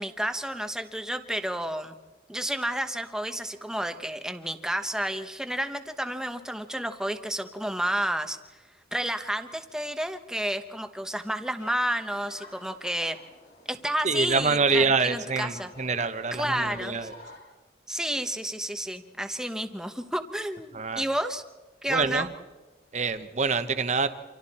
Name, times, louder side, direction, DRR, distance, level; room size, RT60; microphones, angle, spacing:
voice 1, 0.0-1.9 2.3-8.4 8.9-13.2 13.7-15.7 16.3-17.1 17.9-21.4 21.8-22.3, right 1 dB, 5° right, 8 dB, 1.0 m, -31 dB
Human group actions, 11.6-17.4, left 2 dB, 55° left, 5.8 m, -51 dB
voice 2, 14.0-17.1 20.7-21.0 21.9-22.3 22.9-24.1, right 4 dB, 35° right, 10 dB, 1.0 m, -26 dB
28.5 x 26.5 x 4.3 m, 1.2 s
head